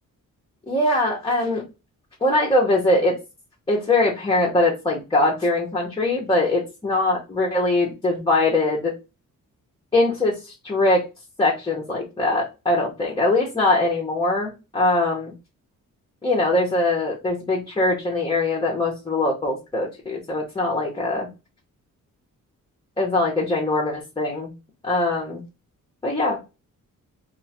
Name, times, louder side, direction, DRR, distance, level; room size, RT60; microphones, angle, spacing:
voice 1, 0.7-1.6 2.2-3.2 3.7-9.0 9.9-11.1 11.4-15.3 16.2-21.3 23.0-24.5 24.8-25.4 26.0-26.4, left 2 dB, 15° left, -3 dB, 0.6 m, -22 dB
2.5 x 2.3 x 4.0 m, 0.28 s
wide cardioid pair, 160°, 33 cm